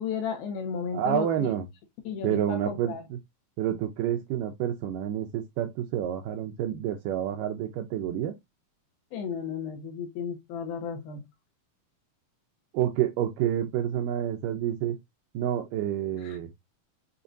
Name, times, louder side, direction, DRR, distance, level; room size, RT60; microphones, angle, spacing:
voice 1, 0.0-1.5 2.0-3.0 9.1-11.3, left 6 dB, 80° left, 3.0 m, -33 dB
voice 2, 0.9-1.7 2.2-3.2 3.6-8.3 12.7-15.0 15.3-16.5, right 11 dB, 80° right, 2.0 m, -29 dB
7.0 x 2.9 x 2.6 m
omnidirectional pair, 4.3 m